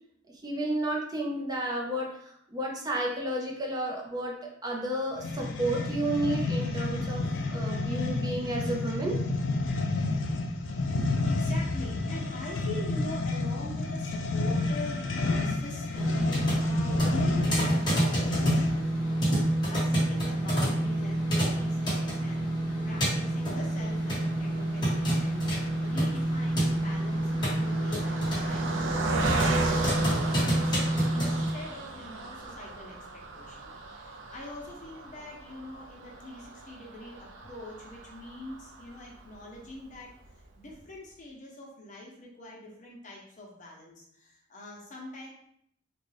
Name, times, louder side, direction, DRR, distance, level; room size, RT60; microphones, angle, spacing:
voice 1, 0.4-4.4 4.6-7.2 7.5-9.2, right 1 dB, 20° right, -1 dB, 0.6 m, -31 dB
sound 1, 5.2-18.9, left 2 dB, 80° left, 0.4 m, -30 dB
voice 2, 10.8-22.5 22.8-40.1 40.6-45.3, left 2 dB, 40° left, -2 dB, 0.8 m, -44 dB
sound 2, 15.9-31.5, right 1 dB, 25° left, 1.2 m, -28 dB
Car passing by, 23.9-39.4 39.9-40.0 40.3-40.4, right 3 dB, 85° right, 0.5 m, -36 dB
3.7 x 2.3 x 3.3 m, 0.70 s
head